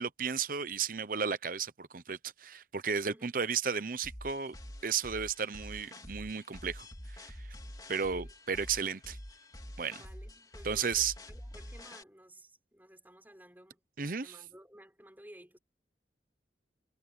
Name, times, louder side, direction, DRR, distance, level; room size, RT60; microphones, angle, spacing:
voice 1, 0.0-4.5 4.8-7.5 7.9-9.2 9.8-10.0 10.6-11.1 14.0-14.3, right 6 dB, 50° right, 0.8 m, -34 dB
voice 2, 3.0-3.3 8.1-8.3 9.9-13.8 14.1-15.6, right 1 dB, 10° right, 4.9 m, -55 dB
sound 1, 4.0-12.0, left 1 dB, 20° left, 3.5 m, -47 dB
head